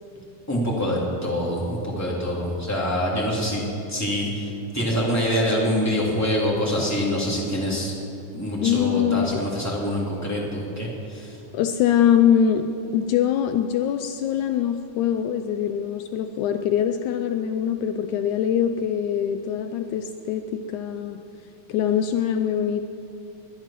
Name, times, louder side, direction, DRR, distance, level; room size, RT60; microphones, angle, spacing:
voice 1, 0.5-3.6 3.9-7.9 8.3-11.4, equal, 5° left, -4 dB, 2.9 m, -25 dB
voice 2, 8.6-9.4 11.5-12.7 12.9-21.2 21.7-22.8, left 9 dB, 80° left, 7 dB, 2.0 m, -23 dB
22.0 x 10.5 x 5.9 m, 2.6 s
omnidirectional pair, 3.6 m